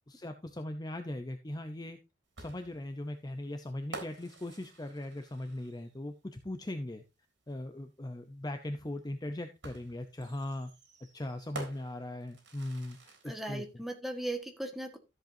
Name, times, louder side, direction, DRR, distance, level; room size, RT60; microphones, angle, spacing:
voice 1, 0.0-2.0 2.4-7.0 7.5-10.7 11.1-13.6, left 1 dB, 20° left, 7 dB, 0.7 m, -39 dB
sound 1, 2.4-6.0 7.5-7.6 9.6-13.5, right 2 dB, 75° right, 3.4 m, -49 dB
voice 2, 13.2-15.0, right 1 dB, ahead, 4 dB, 1.5 m, -38 dB
13.5 x 7.8 x 2.7 m, 0.25 s
head